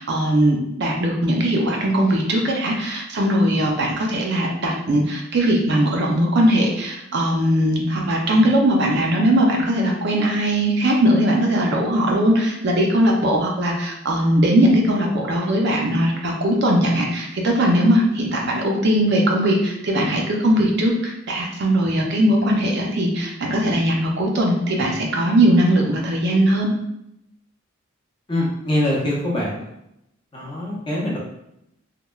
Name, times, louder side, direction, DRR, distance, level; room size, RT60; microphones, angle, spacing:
voice 1, 0.0-26.7, right 1 dB, 50° right, -1 dB, 0.4 m, -19 dB
voice 2, 28.3-29.7 30.3-31.2, left 1 dB, 20° left, -5 dB, 0.6 m, -23 dB
3.0 x 2.1 x 2.2 m, 0.81 s
head